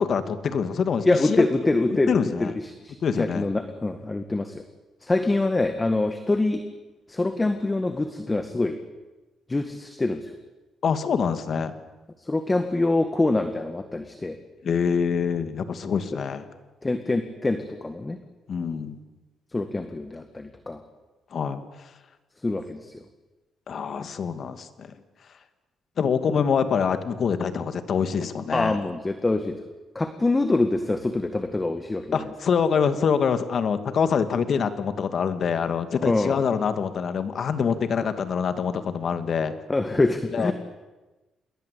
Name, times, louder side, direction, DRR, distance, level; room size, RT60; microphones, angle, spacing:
voice 1, 0.0-1.4 2.1-2.5 3.0-3.5 10.8-11.7 14.6-16.4 18.5-19.0 21.3-21.6 23.7-24.9 26.0-28.8 32.1-39.5 40.3-40.5, left 6 dB, 55° left, 10 dB, 2.4 m, -25 dB
voice 2, 1.0-2.1 2.4-4.6 5.0-6.6 7.1-8.8 9.5-10.3 12.2-14.4 16.1-16.2 16.8-18.2 19.5-20.8 22.4-23.0 28.5-29.6 30.0-32.3 36.0-36.4 38.0-38.1 39.7-40.5, left 2 dB, 20° left, 8 dB, 2.0 m, -25 dB
28.0 x 22.0 x 8.6 m, 1.1 s
cardioid pair, 90°, 0 cm